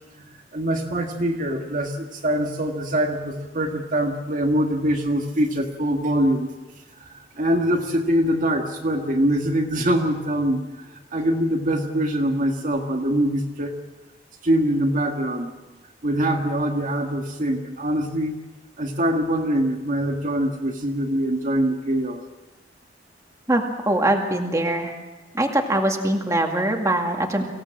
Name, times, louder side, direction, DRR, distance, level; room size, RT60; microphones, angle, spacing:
voice 1, 0.2-6.5 7.0-13.7 14.4-15.5 16.0-18.4 18.8-22.2, right 1 dB, 45° right, 2 dB, 1.7 m, -23 dB
voice 2, 23.5-24.9 25.3-27.5, right 1 dB, 15° right, 2 dB, 2.2 m, -22 dB
24.5 x 16.5 x 7.6 m, 1.1 s
head